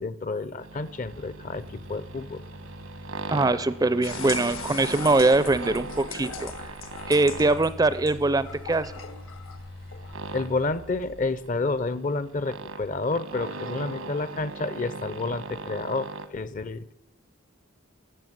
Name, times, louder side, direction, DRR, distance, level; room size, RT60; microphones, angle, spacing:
voice 1, 0.0-2.4 10.3-16.9, left 3 dB, 40° left, 16 dB, 0.6 m, -30 dB
sound 1, 0.6-16.3, right 3 dB, 85° right, 1.1 m, -39 dB
Telephone, 0.9-4.9 6.0-11.7, left 2 dB, 60° left, 1.0 m, -46 dB
voice 2, 3.3-6.7 7.1-8.9, right 2 dB, 20° right, 15 dB, 0.4 m, -22 dB
sound 2, 4.0-11.2, left 6 dB, 80° left, 1.4 m, -40 dB
14.0 x 7.9 x 9.4 m, 0.89 s
head